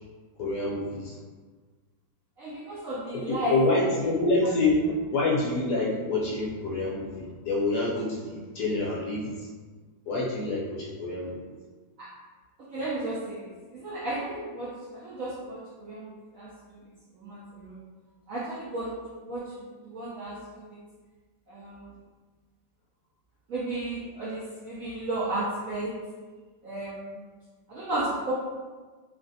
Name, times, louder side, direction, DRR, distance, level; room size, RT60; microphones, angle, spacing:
voice 1, 0.4-1.2 3.1-4.8 5.1-9.5 10.1-11.4, left 2 dB, 70° left, -5 dB, 1.0 m, -27 dB
voice 2, 2.4-3.9 4.8-4.9 12.0-12.1 12.7-16.8 17.1-17.8 18.3-18.9 19.2-20.8 21.5-21.8 23.5-25.9 26.6-27.2 27.7-28.3, right 2 dB, 75° right, -9 dB, 0.7 m, -34 dB
3.1 x 2.5 x 2.6 m, 1.4 s
omnidirectional pair, 2.1 m